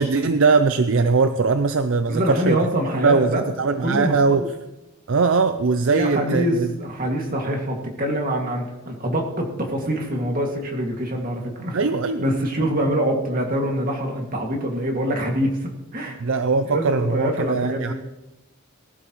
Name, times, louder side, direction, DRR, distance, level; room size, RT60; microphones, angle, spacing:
voice 1, 0.0-2.6 3.0-4.5 5.1-6.7 11.7-12.3 16.2-17.9, right 4 dB, 60° right, 9 dB, 0.5 m, -20 dB
voice 2, 2.1-3.5 3.8-4.5 5.9-11.8 12.2-16.2 16.6-17.9, equal, 40° right, 1 dB, 2.2 m, -25 dB
19.0 x 12.0 x 3.1 m, 0.99 s
head